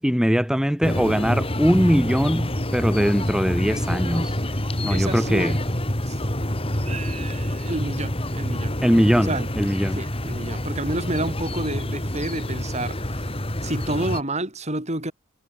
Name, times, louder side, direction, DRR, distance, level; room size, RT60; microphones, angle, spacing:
voice 1, 0.0-4.4 4.8-5.6 8.8-9.3 9.6-10.0, equal, 5° right, 2.1 m, -21 dB
sound 1, 0.8-14.2, left 1 dB, 25° left, 5.2 m, -27 dB
voice 2, 4.5-5.6 6.1-6.2 6.8-8.8 9.2-9.5 9.9-13.3 13.6-15.1, right 1 dB, 30° right, 5.4 m, -30 dB
head